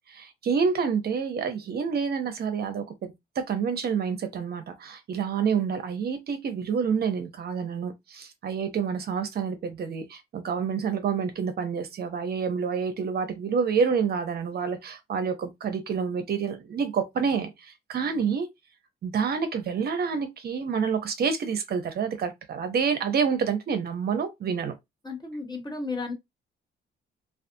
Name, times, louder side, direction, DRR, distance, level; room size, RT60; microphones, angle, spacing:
voice 1, 0.1-18.5 19.0-24.7, right 6 dB, 55° right, 0.6 m, -28 dB
voice 2, 25.0-26.1, left 3 dB, 20° left, 0.9 m, -33 dB
2.4 x 2.4 x 2.6 m
cardioid pair, 90°, 20 cm